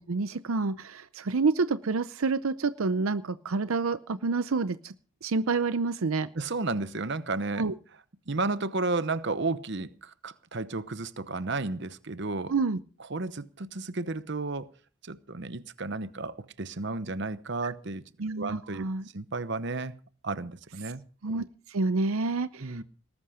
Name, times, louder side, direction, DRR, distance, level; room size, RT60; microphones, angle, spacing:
voice 1, 0.0-4.9 5.2-6.3 7.6-7.7 12.5-12.8 17.6-17.7 18.2-19.1 20.8-20.9 21.2-22.8, right 4 dB, 80° right, 0.6 m, -28 dB
voice 2, 6.3-7.6 8.3-12.5 13.1-14.7 15.0-18.0 18.4-18.9 19.1-19.9 20.2-21.0 22.5-22.8, right 3 dB, 55° right, 0.9 m, -32 dB
19.5 x 11.5 x 5.0 m
head